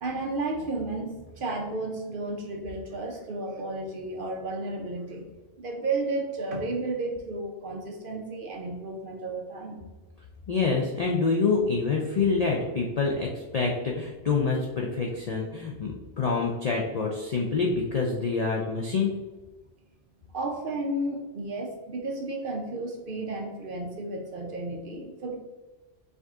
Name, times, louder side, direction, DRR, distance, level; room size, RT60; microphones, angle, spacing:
voice 1, 0.0-5.3 5.6-9.8 20.3-25.4, right 2 dB, 55° right, 1 dB, 0.8 m, -33 dB
voice 2, 10.5-19.1, left 4 dB, 55° left, -1 dB, 0.4 m, -26 dB
4.8 x 2.6 x 3.5 m, 1.2 s
omnidirectional pair, 1.2 m